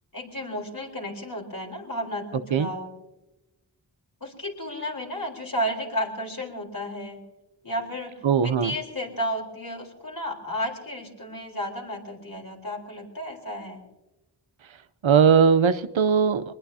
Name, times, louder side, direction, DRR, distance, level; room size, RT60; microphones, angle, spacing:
voice 1, 0.1-2.9 4.2-7.2 7.6-13.8, equal, 45° left, 1 dB, 4.2 m, -33 dB
voice 2, 8.2-8.7 15.0-16.5, right 6 dB, 75° right, 13 dB, 0.8 m, -19 dB
23.0 x 20.5 x 2.8 m, 1.0 s
wide cardioid pair, 50°, 47 cm